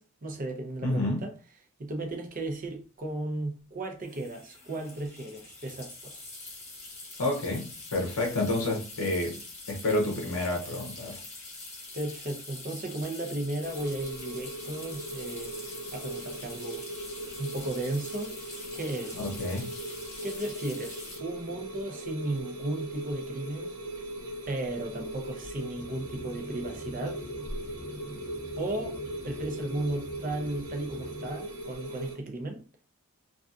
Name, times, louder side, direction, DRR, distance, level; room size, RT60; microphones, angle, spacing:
voice 1, 0.0-1.3 1.8-6.3 11.9-15.6 15.9-16.9 17.4-18.3 18.7-19.2 20.2-23.7 24.5-27.2 28.6-29.0 29.2-32.6, right 2 dB, 40° right, 0.5 m, -35 dB
voice 2, 0.8-1.2 7.2-9.4 9.7-11.2 19.1-19.7, left 2 dB, 80° left, 0.6 m, -29 dB
sound 1, 2.1-2.2 2.4-2.7 4.0-21.2, left 3 dB, 30° left, 0.9 m, -44 dB
sound 2, 13.6-32.1, right 1 dB, 90° right, 0.8 m, -39 dB
sound 3, 25.8-31.3, equal, 15° left, 0.5 m, -44 dB
2.6 x 2.3 x 2.3 m
head